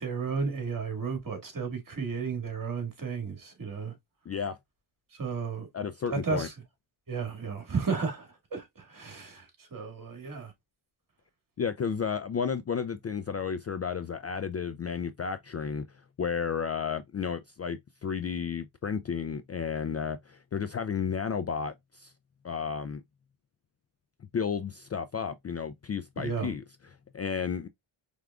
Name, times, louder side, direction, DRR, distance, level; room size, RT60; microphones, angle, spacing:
voice 1, 0.0-3.9 5.2-5.7 6.1-6.5 7.1-10.5 26.2-26.5, right 5 dB, 40° right, 2.0 m, -33 dB
voice 2, 4.3-4.6 5.7-6.5 11.6-15.8 16.2-22.1 22.4-23.0 24.3-27.7, left 6 dB, 35° left, 0.4 m, -32 dB
4.8 x 3.5 x 2.3 m
cardioid pair, 75°, 49 cm